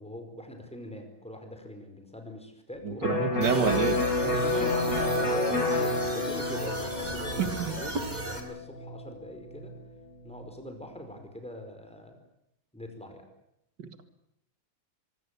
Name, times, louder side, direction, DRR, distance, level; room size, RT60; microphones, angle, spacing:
voice 1, 0.0-3.5 4.2-9.7 10.2-12.2 12.7-13.3, left 1 dB, 5° left, 5 dB, 5.0 m, -43 dB
voice 2, 2.8-4.0 7.4-7.8 13.8-14.0, right 6 dB, 80° right, 9 dB, 2.8 m, -28 dB
Electric guitar, 3.0-10.7, left 2 dB, 50° left, 5.5 m, -30 dB
sound 1, 3.4-8.4, right 1 dB, 25° right, 4.0 m, -36 dB
24.5 x 23.0 x 8.4 m, 0.80 s
omnidirectional pair, 1.9 m